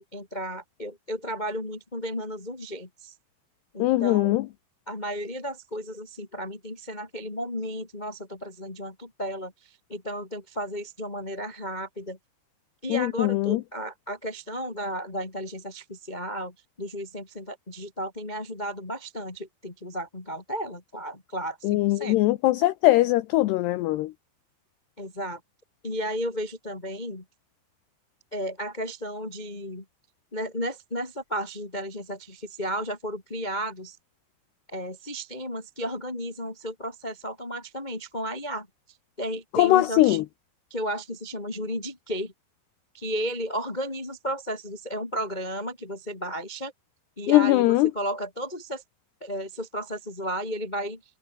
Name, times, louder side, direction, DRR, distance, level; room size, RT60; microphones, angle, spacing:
voice 1, 0.0-3.1 3.7-4.3 4.9-12.2 12.8-22.2 25.0-25.4 25.8-27.2 28.3-29.8 30.3-34.0 34.7-38.7 39.2-40.2 40.7-42.3 42.9-46.7 47.2-48.8 49.2-51.0, equal, 55° left, 0.4 m, -33 dB
voice 2, 3.8-4.5 12.9-13.6 21.6-24.1 39.6-40.2 47.3-47.9, left 17 dB, 75° left, 2.7 m, -21 dB
omnidirectional pair, 5.4 m